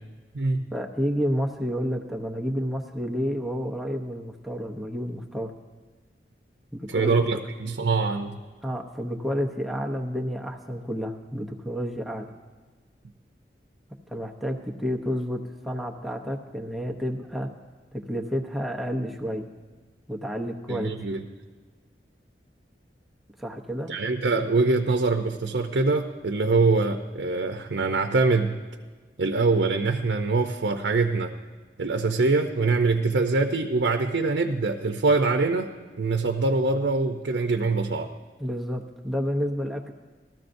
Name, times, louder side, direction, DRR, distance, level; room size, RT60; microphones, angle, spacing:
voice 1, 0.7-5.5 6.7-7.4 8.6-12.3 14.1-17.5 17.9-19.5 20.1-20.9 23.4-23.9 38.4-39.9, equal, ahead, 0 dB, 0.7 m, -30 dB
voice 2, 6.9-8.4 20.7-21.2 23.9-28.6 29.2-31.3 31.8-35.7 36.0-38.1, right 3 dB, 80° right, 4 dB, 0.6 m, -24 dB
19.5 x 13.5 x 2.6 m, 1.4 s
head